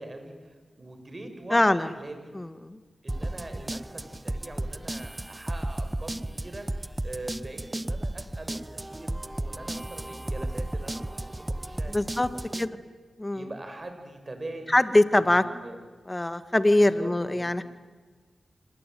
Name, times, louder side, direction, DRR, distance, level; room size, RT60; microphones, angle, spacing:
voice 1, 0.0-2.3 3.0-12.7 13.3-14.8 15.2-15.8 16.8-17.6, right 2 dB, 40° right, 6 dB, 6.7 m, -42 dB
voice 2, 1.5-1.9 2.4-2.8 11.9-12.3 12.6-12.7 13.2-13.5 14.7-15.4 16.1-17.6, left 1 dB, 25° left, 12 dB, 1.9 m, -23 dB
sound 1, 3.1-12.7, right 1 dB, 20° right, 0.8 m, -34 dB
27.0 x 21.5 x 9.5 m, 1.4 s
cardioid pair, 40°, 0 cm